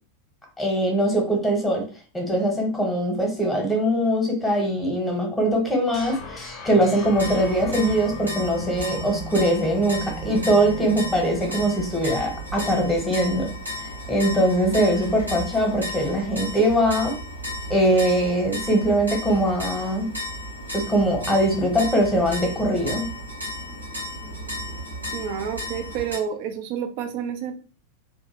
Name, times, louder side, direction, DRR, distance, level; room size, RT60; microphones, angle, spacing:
voice 1, 0.6-1.8 2.1-13.5 14.1-17.1 17.7-20.1 20.7-23.1, right 1 dB, 5° left, 1 dB, 0.9 m, -22 dB
sound 1, 5.9-12.9, equal, 25° left, 0.6 m, -39 dB
sound 2, 7.0-26.2, equal, 85° right, 1.1 m, -34 dB
voice 2, 25.1-27.6, right 8 dB, 45° right, 7 dB, 0.4 m, -29 dB
2.6 x 2.1 x 2.9 m, 0.37 s
figure-of-eight pair, 90°, 0 cm